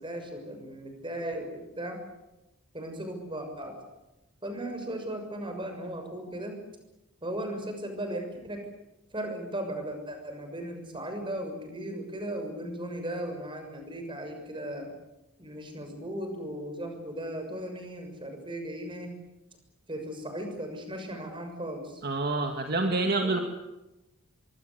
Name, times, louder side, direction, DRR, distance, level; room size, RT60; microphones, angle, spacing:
voice 1, 0.0-2.0 2.7-3.8 4.4-6.6 7.2-8.7 9.1-14.9 15.4-19.1 19.9-22.0 22.7-23.4, right 1 dB, 20° right, 5 dB, 6.6 m, -37 dB
voice 2, 22.0-23.4, right 2 dB, 45° right, 4 dB, 2.2 m, -27 dB
25.5 x 23.5 x 8.4 m, 0.96 s
head